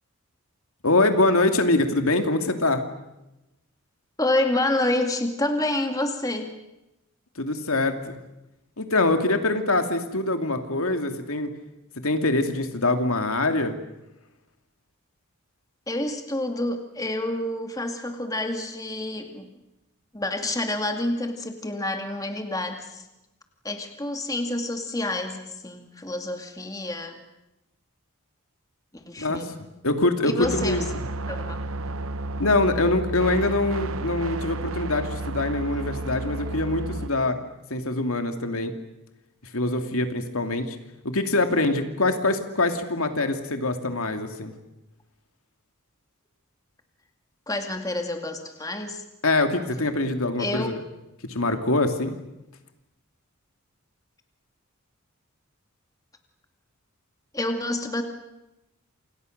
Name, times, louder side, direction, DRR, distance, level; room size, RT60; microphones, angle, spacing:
voice 1, 0.8-2.8 7.4-8.2 8.8-11.5 12.0-13.7 29.2-29.5 29.8-30.8 32.4-37.4 37.7-38.7 39.5-40.8 41.0-44.5 49.2-50.8 51.3-52.1, left 2 dB, 75° left, 6 dB, 2.5 m, -24 dB
voice 2, 4.2-6.5 15.9-19.5 20.1-23.0 23.6-27.2 28.9-29.5 30.2-30.8 31.3-31.6 47.5-49.0 50.4-50.7 57.3-58.0, left 1 dB, 15° left, 5 dB, 2.3 m, -28 dB
sound 1, 30.4-37.1, right 2 dB, 70° right, 0.9 m, -32 dB
28.5 x 27.5 x 6.6 m, 0.95 s
head